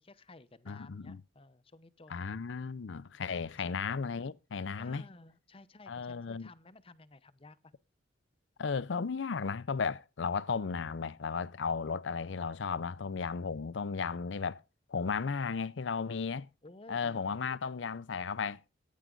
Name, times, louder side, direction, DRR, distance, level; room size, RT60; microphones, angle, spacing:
voice 1, 0.0-2.3 3.3-3.8 4.8-7.7 16.6-17.8, left 2 dB, 30° left, 0.8 m, -55 dB
voice 2, 0.7-1.2 2.1-5.0 5.9-6.5 8.6-14.6 14.9-16.5 16.9-18.6, left 5 dB, 65° left, 0.5 m, -35 dB
15.5 x 9.4 x 3.8 m
head